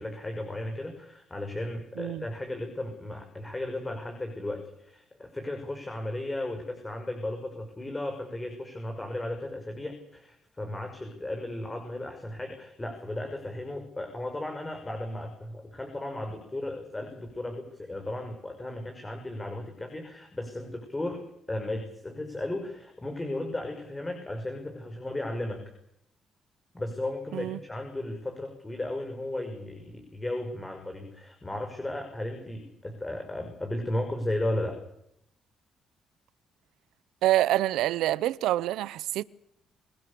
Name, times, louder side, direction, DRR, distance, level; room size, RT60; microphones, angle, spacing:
voice 1, 0.0-25.7 26.7-34.8, left 1 dB, 15° left, 5.9 m, -35 dB
voice 2, 37.2-39.2, right 14 dB, 90° right, 0.8 m, -26 dB
25.5 x 19.5 x 7.0 m
cardioid pair, 90°, 0 cm